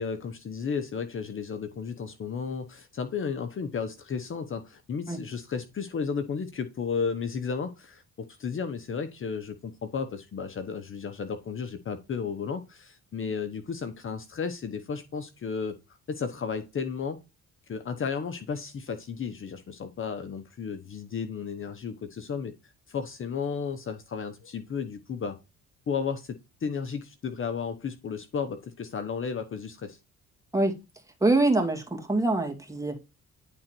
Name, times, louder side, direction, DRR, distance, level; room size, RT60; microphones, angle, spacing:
voice 1, 0.0-15.8 16.1-17.2 17.7-25.4 25.9-30.0, left 6 dB, 45° left, 0.9 m, -33 dB
voice 2, 31.2-33.0, right 2 dB, 10° right, 2.3 m, -24 dB
10.5 x 3.9 x 4.5 m
cardioid pair, 90°, 30 cm